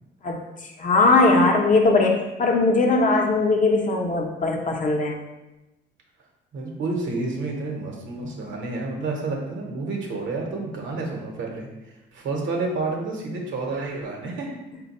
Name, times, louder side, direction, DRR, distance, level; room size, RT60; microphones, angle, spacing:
voice 1, 0.8-5.2, left 3 dB, 40° left, 1 dB, 0.7 m, -19 dB
voice 2, 6.5-14.5, right 3 dB, 70° right, 0 dB, 0.9 m, -30 dB
4.2 x 2.2 x 4.1 m, 1.0 s
cardioid pair, 90°, 20 cm